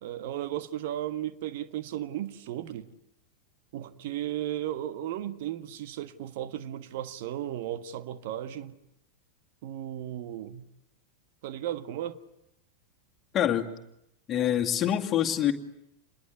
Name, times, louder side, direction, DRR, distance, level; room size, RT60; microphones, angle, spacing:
voice 1, 0.0-2.9 3.7-8.7 9.6-10.7 11.4-12.2, right 12 dB, 50° right, 1.5 m, -35 dB
voice 2, 13.3-13.7 14.3-15.5, left 10 dB, 30° left, 2.2 m, -25 dB
28.5 x 21.5 x 9.5 m
figure-of-eight pair, 90°, 0 cm